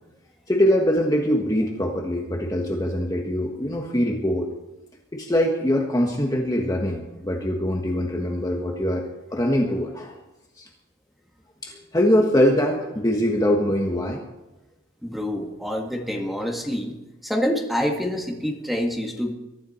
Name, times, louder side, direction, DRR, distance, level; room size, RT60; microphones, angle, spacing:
voice 1, 0.5-4.5 5.1-10.1 10.6-10.7 11.6-14.2, equal, 20° left, 0 dB, 1.4 m, -23 dB
voice 2, 15.0-17.0 17.2-19.3, equal, ahead, 1 dB, 1.8 m, -26 dB
22.5 x 13.0 x 4.4 m, 1.0 s
head